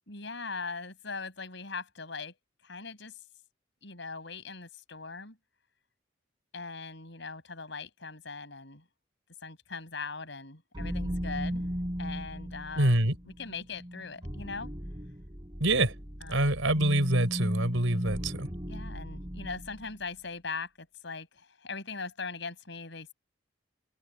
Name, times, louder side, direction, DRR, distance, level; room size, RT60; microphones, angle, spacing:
voice 1, 0.1-2.4 2.6-3.2 3.8-5.4 6.5-8.8 9.4-11.7 12.0-13.0 13.2-14.7 16.2-16.5 18.7-23.1, left 4 dB, 65° left, 5.7 m, -40 dB
sound 1, 10.7-19.9, equal, 25° right, 4.3 m, -37 dB
voice 2, 12.8-13.1 15.6-15.9 16.3-18.5, right 1 dB, 85° right, 4.6 m, -25 dB
head